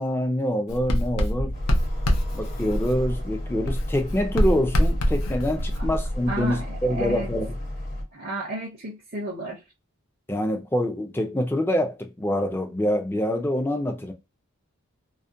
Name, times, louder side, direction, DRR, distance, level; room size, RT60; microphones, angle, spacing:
voice 1, 0.0-1.5 2.3-7.6 10.3-14.1, equal, 10° left, 0.3 m, -25 dB
Writing, 0.7-3.3 3.7-6.4, equal, 80° left, 0.5 m, -25 dB
sound 1, 1.5-8.0, left 1 dB, 45° left, 0.8 m, -34 dB
voice 2, 6.3-7.3 8.1-9.6, right 1 dB, 40° right, 0.5 m, -32 dB
2.4 x 2.1 x 2.5 m
head